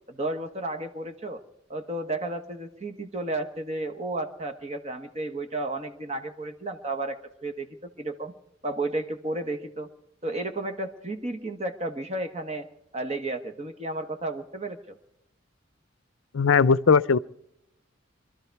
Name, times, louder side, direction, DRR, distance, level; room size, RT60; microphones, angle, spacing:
voice 1, 0.1-1.4 1.7-8.3 8.6-9.9 10.2-12.7 12.9-15.0, right 2 dB, 30° right, 1.3 m, -32 dB
voice 2, 16.3-17.2, left 5 dB, 75° left, 0.5 m, -19 dB
23.5 x 13.0 x 4.6 m
head